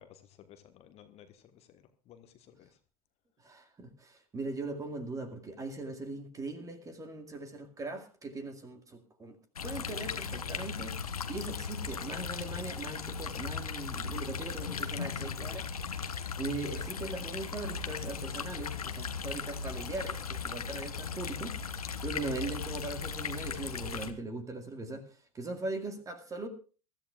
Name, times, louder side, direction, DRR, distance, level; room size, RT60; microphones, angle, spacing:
voice 1, 0.0-2.7, left 9 dB, 35° left, 1.3 m, -56 dB
voice 2, 3.4-9.4 9.6-15.8 16.4-26.5, right 2 dB, 15° right, 2.2 m, -40 dB
sound 1, 9.6-24.1, left 6 dB, 75° left, 1.2 m, -37 dB
23.0 x 14.0 x 2.4 m
figure-of-eight pair, 90°, 19 cm